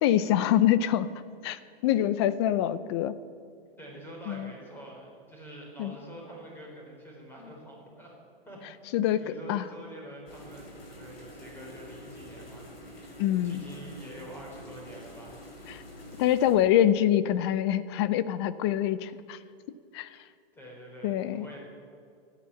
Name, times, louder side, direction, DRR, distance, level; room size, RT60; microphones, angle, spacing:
voice 1, 0.0-1.1 1.4-3.1 4.3-4.5 5.8-5.9 8.9-9.6 13.2-13.6 15.7-15.8 16.2-19.4 19.9-20.1 21.0-21.5, left 11 dB, 25° left, 15 dB, 0.5 m, -25 dB
voice 2, 3.8-8.1 8.5-8.6 9.1-15.5 20.5-21.6, equal, 5° left, -1 dB, 4.4 m, -46 dB
sound 1, 10.3-16.5, equal, 75° left, 4.9 m, -47 dB
14.0 x 10.5 x 8.5 m, 2.4 s
hypercardioid pair, 145°, 30 cm